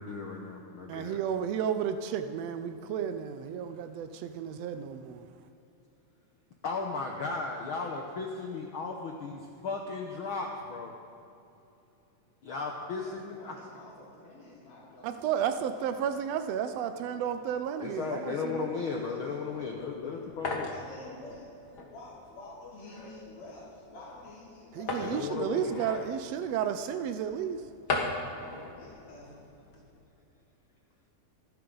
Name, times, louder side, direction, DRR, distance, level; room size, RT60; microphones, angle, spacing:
voice 1, 0.0-1.2 6.6-10.9 12.4-13.5 17.8-20.7 25.0-25.9, left 4 dB, 70° left, 1 dB, 1.2 m, -35 dB
voice 2, 0.9-5.2 15.0-18.8 24.7-27.6, right 8 dB, 85° right, 9 dB, 1.4 m, -32 dB
voice 3, 13.0-15.3 18.4-19.8 20.7-25.8 28.7-29.4, left 2 dB, 90° left, -8 dB, 4.4 m, -49 dB
sound 1, 19.5-30.0, left 3 dB, 40° left, 1.6 m, -39 dB
26.0 x 10.5 x 3.9 m, 2.8 s
omnidirectional pair, 3.6 m